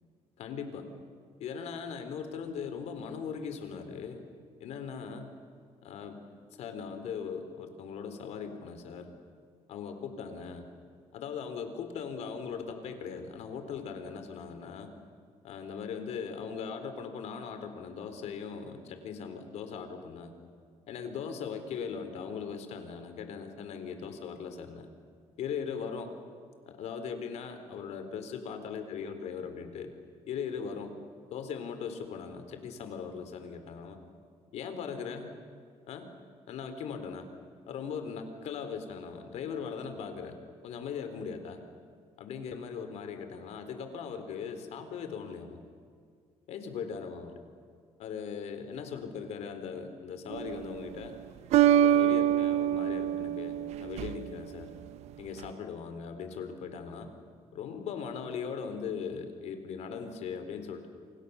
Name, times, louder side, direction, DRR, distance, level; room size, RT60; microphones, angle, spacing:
voice 1, 0.4-0.8 1.4-4.2 4.6-5.3 5.8-6.2 6.6-9.1 9.7-10.6 11.1-14.9 15.4-20.3 20.9-24.9 25.4-26.1 26.7-29.9 30.3-30.9 31.3-34.0 34.5-35.3 35.9-36.1 36.5-37.3 37.7-40.4 40.6-41.6 42.2-45.6 46.5-47.3 48.0-51.1 51.6-54.7 55.2-57.1 57.5-60.9, left 6 dB, 75° left, 8 dB, 3.9 m, -39 dB
sound 1, 50.3-50.8 51.5-54.4, right 11 dB, 75° right, 0.6 m, -25 dB
28.5 x 27.0 x 7.1 m, 2.2 s
cardioid pair, 115°, 11 cm